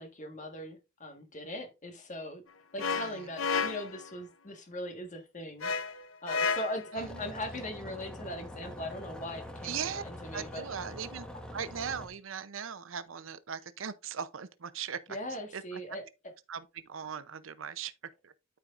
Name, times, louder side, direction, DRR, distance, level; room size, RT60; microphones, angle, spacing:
voice 1, 0.0-2.4 2.7-10.6 15.1-16.0, left 1 dB, 40° left, 1.5 m, -40 dB
sound 1, 2.8-4.1 5.6-6.9, left 5 dB, 85° left, 0.7 m, -32 dB
voice 2, 2.8-3.3 6.9-7.2 9.6-10.0 10.3-11.3 11.5-15.2 15.5-15.8 16.5-17.9 18.2-18.3, right 7 dB, 85° right, 0.7 m, -39 dB
sound 2, 7.0-12.1, left 1 dB, 5° left, 1.1 m, -44 dB
12.5 x 4.7 x 2.5 m
head